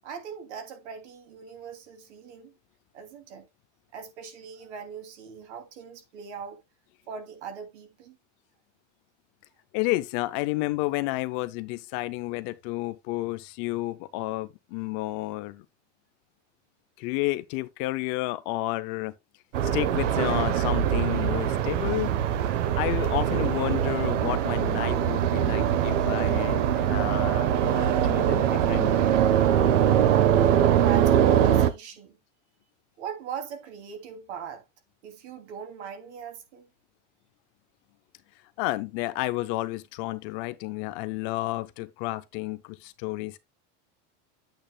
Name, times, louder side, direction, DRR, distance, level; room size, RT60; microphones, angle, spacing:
voice 1, 0.0-2.5 2.9-3.5 3.9-6.6 7.1-8.2 30.7-32.2 33.0-34.6 35.0-36.7, right 7 dB, 70° right, 2.8 m, -40 dB
voice 2, 9.7-15.7 17.0-19.1 19.6-22.1 22.7-29.1 38.6-43.4, left 18 dB, 35° left, 0.5 m, -31 dB
sound 1, 19.5-31.7, right 10 dB, 90° right, 1.2 m, -23 dB
10.0 x 8.8 x 2.3 m
supercardioid pair, 170°, 36 cm